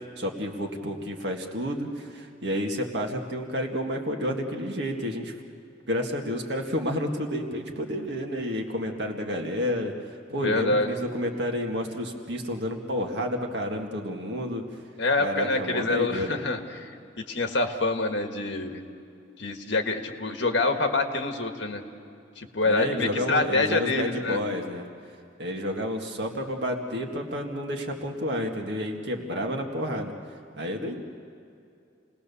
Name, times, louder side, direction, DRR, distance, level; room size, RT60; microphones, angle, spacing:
voice 1, 0.2-5.3 5.9-14.6 15.2-16.4 22.6-24.9 25.4-30.1 30.6-31.0, equal, 65° right, 2 dB, 1.9 m, -30 dB
voice 2, 10.4-10.9 15.0-18.8 19.4-21.8 22.4-24.4, left 2 dB, 70° left, 5 dB, 1.7 m, -26 dB
28.5 x 19.5 x 7.0 m, 2.5 s
head